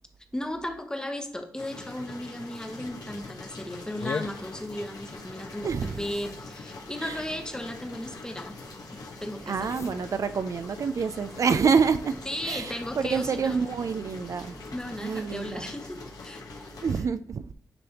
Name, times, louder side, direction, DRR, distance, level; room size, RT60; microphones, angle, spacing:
voice 1, 0.3-8.6 9.2-9.6 12.2-13.6 14.7-16.4, left 1 dB, 10° left, 1.0 m, -35 dB
sound 1, 1.6-17.0, left 3 dB, 70° left, 1.2 m, -43 dB
sound 2, 2.7-14.9, right 2 dB, 85° right, 1.7 m, -53 dB
sound 3, 4.0-13.6, left 5 dB, 45° left, 0.4 m, -44 dB
voice 2, 5.6-6.0 7.0-7.2 9.5-14.6 15.0-15.7 16.8-17.5, right 5 dB, 55° right, 0.3 m, -27 dB
9.8 x 3.4 x 2.9 m
cardioid pair, 70°, 7 cm